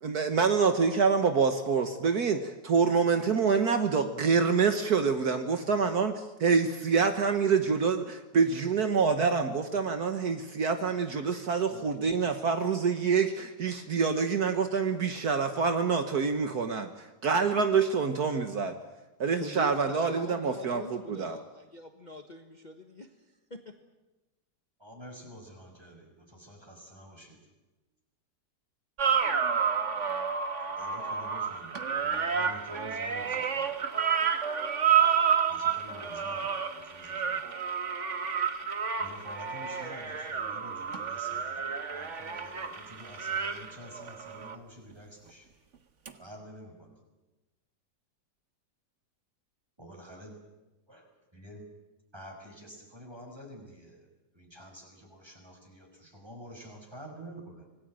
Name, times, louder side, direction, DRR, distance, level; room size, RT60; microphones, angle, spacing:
voice 1, 0.0-18.7 19.2-21.4, right 5 dB, 65° right, 1.7 m, -26 dB
voice 2, 19.4-23.1 23.5-23.7, left 2 dB, 25° left, 1.5 m, -44 dB
voice 3, 24.8-27.5 30.6-33.9 35.5-37.5 39.0-45.5 46.2-47.0 49.8-50.4 50.9-51.7 52.1-54.1 54.3-57.7, equal, 15° right, 5.7 m, -49 dB
sound 1, 29.0-44.5 46.1-46.2, right 7 dB, 45° right, 1.7 m, -30 dB
26.0 x 19.0 x 8.9 m
omnidirectional pair, 1.8 m